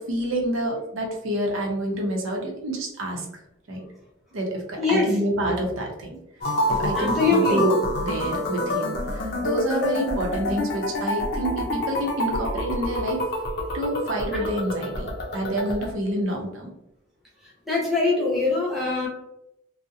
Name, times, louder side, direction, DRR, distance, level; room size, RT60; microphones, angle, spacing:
voice 1, 0.0-3.3 3.7-3.9 4.3-6.2 6.7-13.2 13.7-16.7, right 1 dB, 85° right, 0 dB, 0.6 m, -27 dB
voice 2, 4.8-5.2 6.9-7.6 14.4-14.5 17.7-19.1, left 3 dB, ahead, -5 dB, 0.6 m, -23 dB
sound 1, 6.4-15.9, left 1 dB, 55° left, 0.4 m, -28 dB
2.7 x 2.0 x 2.3 m, 0.82 s
head